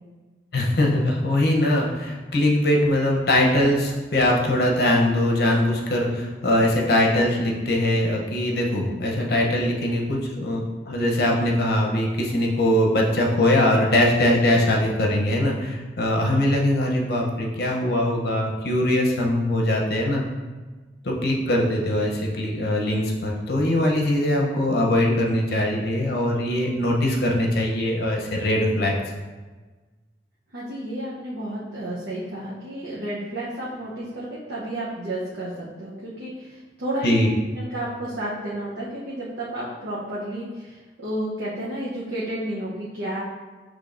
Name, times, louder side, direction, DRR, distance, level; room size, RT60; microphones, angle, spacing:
voice 1, 0.5-20.2 21.0-28.9 37.0-37.3, left 1 dB, 60° left, -1 dB, 0.7 m, -21 dB
voice 2, 30.5-37.2 37.6-43.2, right 1 dB, 85° right, -7 dB, 0.8 m, -31 dB
6.1 x 3.1 x 2.5 m, 1.3 s
head